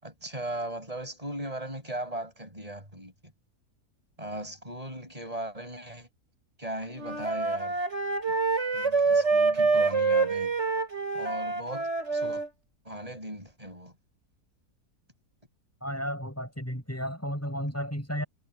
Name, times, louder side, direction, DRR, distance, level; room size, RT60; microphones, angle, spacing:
voice 1, 0.0-3.1 4.2-6.1 6.6-7.8 8.3-8.4 8.7-10.6 11.1-12.4 12.8-13.9, right 1 dB, 20° right, 8.1 m, -38 dB
Wind instrument woodwind instrument, 6.9-12.5, right 4 dB, 45° right, 6.0 m, -26 dB
voice 2, 15.8-18.2, equal, 10° left, 7.3 m, -33 dB
omnidirectional pair, 1.7 m